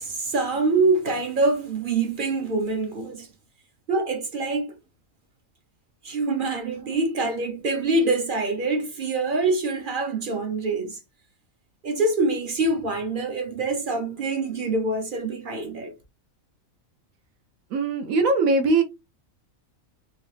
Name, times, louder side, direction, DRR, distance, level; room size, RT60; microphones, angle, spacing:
voice 1, 0.0-3.3 3.9-4.7 6.0-11.0 11.8-15.9, right 3 dB, 50° right, 0.7 m, -25 dB
voice 2, 17.7-18.8, right 3 dB, 80° right, 1.1 m, -21 dB
3.1 x 2.8 x 3.1 m
omnidirectional pair, 1.4 m